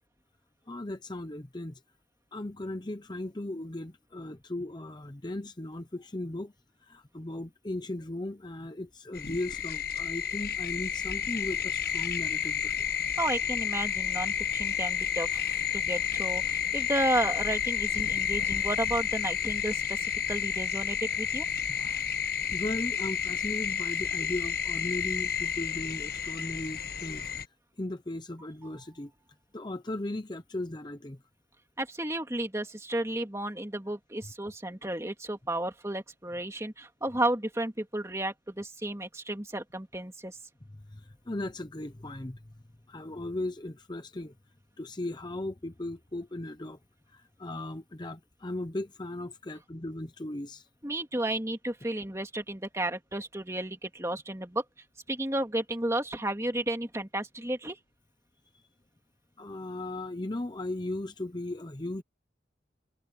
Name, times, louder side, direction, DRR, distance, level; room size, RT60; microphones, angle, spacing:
voice 1, 0.7-1.8 2.3-6.5 6.8-12.9 21.7-22.1 22.5-27.3 27.8-29.1 29.5-31.2 40.9-42.4 42.9-44.3 44.8-46.8 47.1-50.7 59.4-62.0, left 1 dB, 25° left, 0.8 m, -37 dB
sound 1, 9.1-27.5, left 8 dB, 55° left, 1.2 m, -31 dB
voice 2, 13.2-21.5 31.8-40.4 50.8-54.6 55.1-57.8, right 1 dB, 15° right, 2.7 m, -32 dB
head